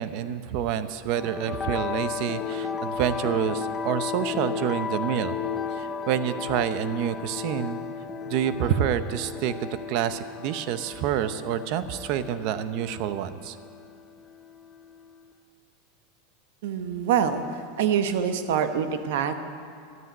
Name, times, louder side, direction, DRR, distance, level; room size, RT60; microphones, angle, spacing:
voice 1, 0.0-5.3 5.8-7.8 8.3-13.6, right 10 dB, 55° right, 12 dB, 0.8 m, -28 dB
sound 1, 1.1-15.2, left 6 dB, 15° left, 0.9 m, -34 dB
voice 2, 16.6-19.3, right 8 dB, 75° right, 9 dB, 1.0 m, -25 dB
12.0 x 9.1 x 9.4 m, 2.5 s
supercardioid pair, 140°, 0 cm